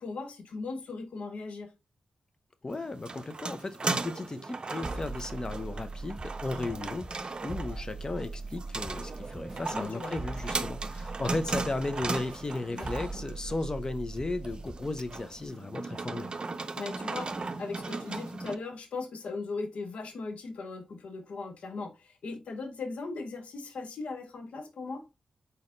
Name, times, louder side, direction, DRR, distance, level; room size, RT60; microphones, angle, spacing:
voice 1, 0.0-1.7 6.5-6.8 9.7-10.1 12.7-12.9 16.7-25.1, left 3 dB, 75° left, 0.8 m, -38 dB
voice 2, 2.6-16.3, left 2 dB, 35° left, 0.7 m, -35 dB
sound 1, 2.7-18.6, right 3 dB, 45° right, 0.5 m, -37 dB
sound 2, 4.8-15.5, right 3 dB, 15° right, 1.7 m, -41 dB
4.1 x 4.0 x 2.5 m
cardioid pair, 55°, 2 cm